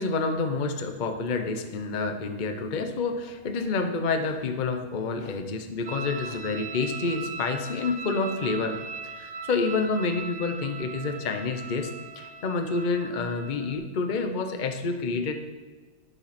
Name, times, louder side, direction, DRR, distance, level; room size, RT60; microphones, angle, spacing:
voice 1, 0.0-15.3, left 4 dB, 40° left, 6 dB, 0.8 m, -28 dB
sound 1, 5.9-13.8, right 5 dB, 85° right, 1.5 m, -39 dB
11.5 x 6.4 x 5.9 m, 1.3 s
omnidirectional pair, 1.7 m